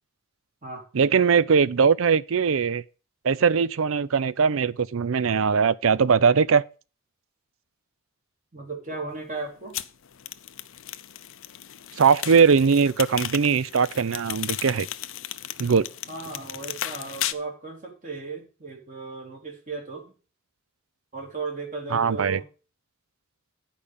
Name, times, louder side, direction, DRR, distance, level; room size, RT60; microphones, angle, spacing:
voice 1, 0.9-2.8 3.2-6.6 12.0-14.9 15.6-15.9 21.9-22.4, right 6 dB, 75° right, 0.5 m, -20 dB
voice 2, 8.5-9.8 16.1-20.1 21.1-22.5, right 3 dB, 40° right, 3.1 m, -36 dB
sound 1, 9.7-17.3, left 12 dB, 65° left, 0.6 m, -35 dB
10.0 x 5.1 x 7.0 m
head